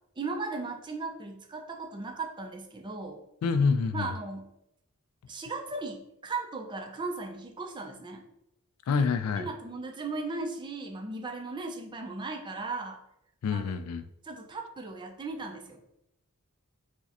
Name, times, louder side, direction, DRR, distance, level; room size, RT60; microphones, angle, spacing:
voice 1, 0.2-3.2 3.9-4.5 5.3-8.3 9.4-13.0 13.5-13.6 14.2-15.8, right 3 dB, 20° right, 3 dB, 0.4 m, -37 dB
voice 2, 3.4-4.1 8.9-9.5 13.4-14.0, left 5 dB, 75° left, 11 dB, 0.3 m, -27 dB
4.6 x 2.1 x 2.9 m, 0.81 s
head